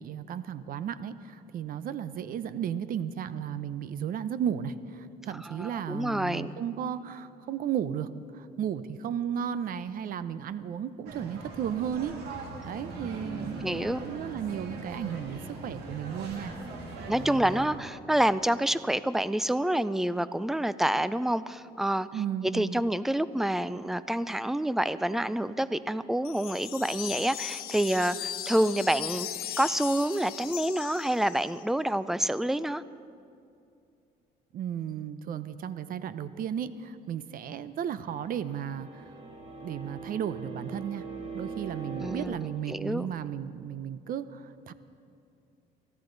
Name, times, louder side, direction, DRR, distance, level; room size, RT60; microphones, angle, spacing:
voice 1, 0.0-12.2 12.6-16.5 22.1-22.8 34.5-39.1 39.6-41.0 41.3-44.7, right 9 dB, 55° right, 14 dB, 0.7 m, -34 dB
voice 2, 5.3-6.5 13.6-14.0 17.1-22.1 22.4-29.3 29.6-32.8 42.0-42.4 42.7-43.1, right 1 dB, ahead, 15 dB, 0.4 m, -28 dB
sound 1, 11.1-17.7, right 2 dB, 75° right, 2.4 m, -40 dB
sound 2, 26.2-31.6, left 11 dB, 65° left, 1.0 m, -38 dB
sound 3, 37.8-42.3, right 4 dB, 40° right, 2.6 m, -42 dB
24.0 x 14.5 x 4.0 m, 2.5 s
cardioid pair, 110°, 17 cm